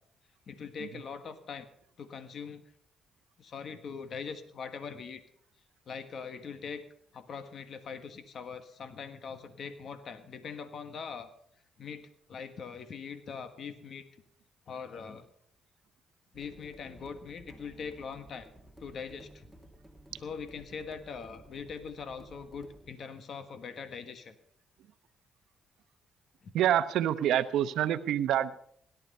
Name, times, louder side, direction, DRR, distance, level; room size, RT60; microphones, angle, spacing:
voice 1, 0.5-1.7 2.0-2.6 3.4-5.2 5.9-6.8 7.1-11.3 11.8-14.0 14.7-15.3 16.3-18.5 18.8-19.5 20.1-24.3 26.4-26.5, left 6 dB, 55° left, 10 dB, 1.4 m, -42 dB
sound 1, 16.3-22.9, right 1 dB, 5° left, 2.0 m, -54 dB
voice 2, 26.5-28.6, right 11 dB, 80° right, 12 dB, 0.8 m, -27 dB
17.5 x 12.0 x 5.5 m, 0.65 s
cardioid pair, 90°, 0 cm